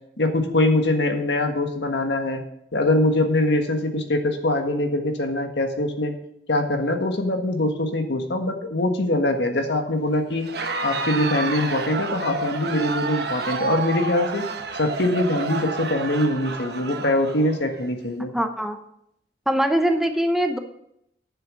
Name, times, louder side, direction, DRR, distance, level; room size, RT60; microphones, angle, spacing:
voice 1, 0.2-2.4 2.7-6.1 6.5-10.5 10.8-14.4 14.7-18.3, left 1 dB, 85° left, 5 dB, 1.5 m, -23 dB
Crowd, 10.4-17.9, right 3 dB, 65° right, 1.1 m, -30 dB
voice 2, 18.3-18.8 19.5-20.6, equal, ahead, 6 dB, 0.7 m, -22 dB
10.0 x 7.1 x 6.3 m, 0.75 s
head